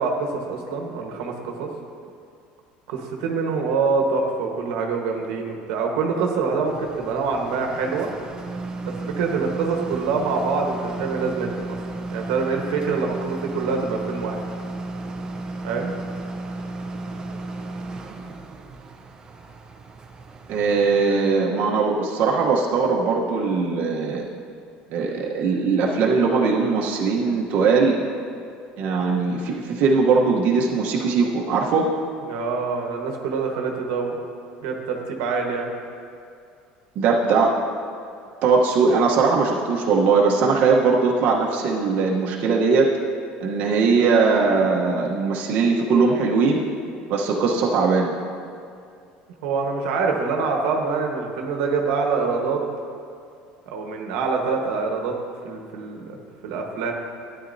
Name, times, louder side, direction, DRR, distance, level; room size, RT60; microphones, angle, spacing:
voice 1, 0.0-1.7 2.9-8.1 8.8-11.8 12.1-14.4 15.6-15.9 32.2-34.2 34.6-35.7 49.4-52.6 53.7-55.1 55.4-56.9, right 4 dB, 85° right, 2 dB, 1.2 m, -25 dB
sound 1, 6.6-21.3, right 2 dB, 25° right, 0.7 m, -34 dB
voice 2, 20.5-24.3 24.9-28.0 28.8-31.9 37.0-37.5 38.4-42.9 43.4-46.7 47.1-48.1, right 4 dB, 55° right, -2 dB, 1.0 m, -20 dB
12.5 x 9.5 x 2.7 m, 2.4 s
cardioid pair, 135°, 3 cm